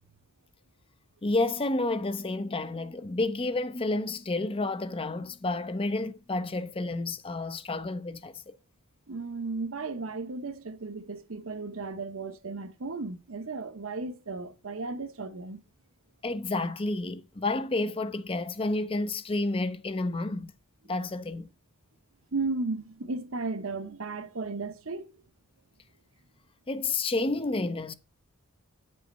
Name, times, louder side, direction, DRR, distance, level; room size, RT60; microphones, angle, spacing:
voice 1, 1.2-8.6 16.2-20.5 20.9-21.5 26.7-27.9, left 2 dB, 25° left, 0.5 m, -30 dB
voice 2, 9.1-15.6 22.3-25.1, right 3 dB, 70° right, 0.9 m, -35 dB
8.6 x 5.6 x 5.3 m
head